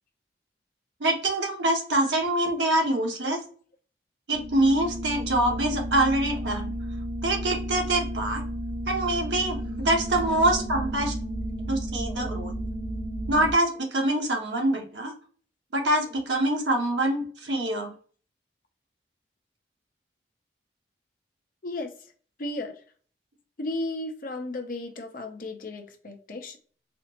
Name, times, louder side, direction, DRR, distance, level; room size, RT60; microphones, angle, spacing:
voice 1, 1.0-3.4 4.3-6.7 7.2-8.4 8.9-11.1 11.7-12.5 13.3-15.1 15.7-17.9, right 1 dB, 90° right, 1.0 m, -25 dB
sound 1, 4.3-13.5, right 1 dB, 55° right, 0.8 m, -33 dB
voice 2, 22.4-22.8 23.6-26.6, left 2 dB, 50° left, 0.7 m, -34 dB
4.2 x 2.0 x 2.8 m
head